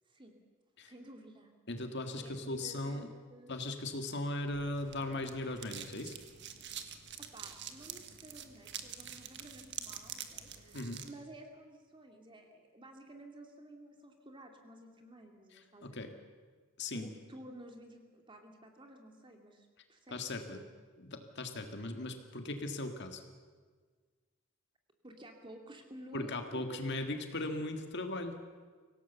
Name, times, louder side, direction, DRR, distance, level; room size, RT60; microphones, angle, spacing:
voice 1, 0.8-1.5 2.1-3.6 7.2-16.1 16.9-20.6 25.0-26.8, right 1 dB, 25° right, 3 dB, 2.5 m, -53 dB
voice 2, 1.7-3.1 3.5-6.2 10.7-11.0 15.8-16.1 16.8-17.1 20.1-20.6 21.1-23.2 26.1-28.4, left 2 dB, 55° left, 6 dB, 1.9 m, -38 dB
sound 1, 4.5-11.1, right 9 dB, 55° right, 1.6 m, -47 dB
25.0 x 17.5 x 7.0 m, 1.5 s
head